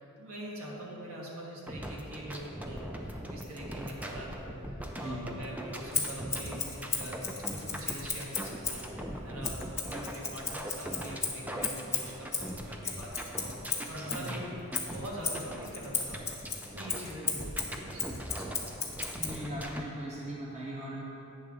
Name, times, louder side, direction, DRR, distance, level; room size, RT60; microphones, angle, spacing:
voice 1, 0.0-14.5 14.9-16.3 16.7-18.6, right 1 dB, 70° right, -4 dB, 1.5 m, -44 dB
sound 1, 1.7-19.9, equal, 5° right, 0.4 m, -41 dB
Scissors, 5.9-8.9 9.4-14.3 14.7-19.4, left 5 dB, 10° left, 0.7 m, -35 dB
voice 2, 14.1-14.4 19.1-21.0, right 1 dB, 30° right, -5 dB, 0.8 m, -39 dB
8.9 x 3.7 x 6.1 m, 3.0 s
head